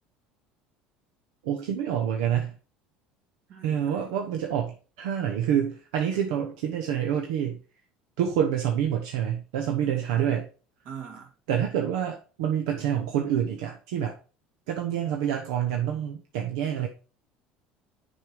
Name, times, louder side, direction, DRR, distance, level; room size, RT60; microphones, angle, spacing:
voice 1, 1.4-2.6 3.6-7.6 8.2-10.5 11.5-14.1 14.7-16.9, right 9 dB, 90° right, 0.9 m, -27 dB
voice 2, 3.5-4.2 9.8-10.0 10.8-11.3, right 7 dB, 60° right, 2.8 m, -43 dB
6.5 x 5.4 x 4.8 m
supercardioid pair, 110°, 3 cm